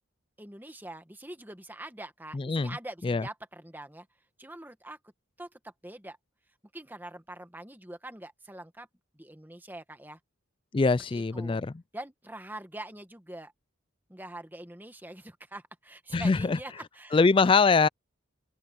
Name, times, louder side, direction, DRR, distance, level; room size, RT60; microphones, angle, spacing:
voice 1, 0.4-4.1 4.4-5.0 5.4-6.2 6.7-8.9 9.1-10.2 11.1-11.6 11.9-13.5 14.1-17.2, right 1 dB, 10° right, 1.5 m, -44 dB
voice 2, 2.3-2.8 3.0-3.2 10.7-11.7 16.1-16.6 17.1-17.9, left 4 dB, 25° left, 0.3 m, -23 dB
open air
head